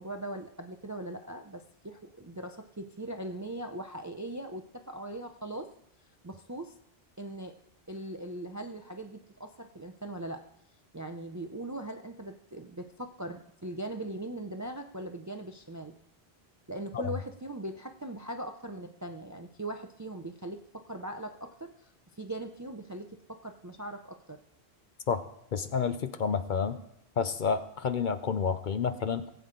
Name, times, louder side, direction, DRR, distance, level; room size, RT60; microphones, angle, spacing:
voice 1, 0.0-5.7 6.2-6.7 7.2-7.6 7.9-10.4 10.9-15.9 16.7-24.4, right 1 dB, 25° right, 6 dB, 0.4 m, -40 dB
voice 2, 25.5-26.8 27.2-29.3, left 6 dB, 55° left, 11 dB, 0.7 m, -29 dB
18.5 x 8.0 x 3.8 m, 0.77 s
omnidirectional pair, 1.1 m